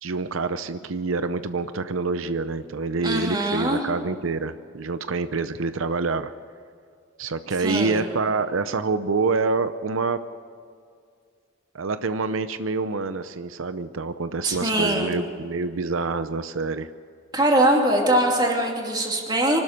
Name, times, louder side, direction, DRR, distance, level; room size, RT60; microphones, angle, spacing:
voice 1, 0.0-6.3 7.2-10.2 11.7-16.9, right 4 dB, 90° right, 11 dB, 0.7 m, -26 dB
voice 2, 3.0-3.8 7.6-8.0 14.4-15.1 17.3-19.6, right 1 dB, 20° right, 0 dB, 2.9 m, -22 dB
25.0 x 12.5 x 8.1 m, 2.3 s
head